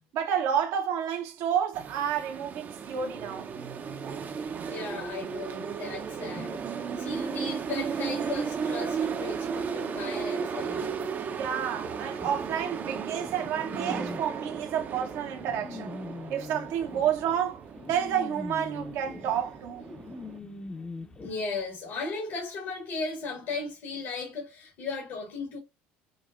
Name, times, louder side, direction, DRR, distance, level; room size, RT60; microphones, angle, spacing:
voice 1, 0.1-3.5 11.3-15.9 16.3-19.9, right 8 dB, 70° right, 0.9 m, -30 dB
sound 1, 1.7-20.4, right 6 dB, 40° right, 0.6 m, -35 dB
voice 2, 4.6-10.8 16.4-16.5 20.7-25.6, left 3 dB, 65° left, 1.5 m, -36 dB
sound 2, 12.2-21.3, left 3 dB, 20° left, 0.7 m, -43 dB
5.0 x 2.1 x 2.4 m
supercardioid pair, 90°, 5 cm